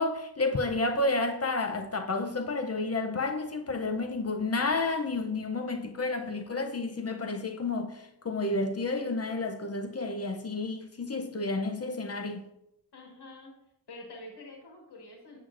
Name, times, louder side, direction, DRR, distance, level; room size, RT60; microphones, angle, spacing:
voice 1, 0.0-12.5, left 3 dB, 40° left, 0.6 m, -31 dB
voice 2, 12.9-13.5 13.9-15.4, left 2 dB, 90° left, 1.5 m, -47 dB
7.8 x 7.5 x 2.5 m
wide cardioid pair, 100°, 39 cm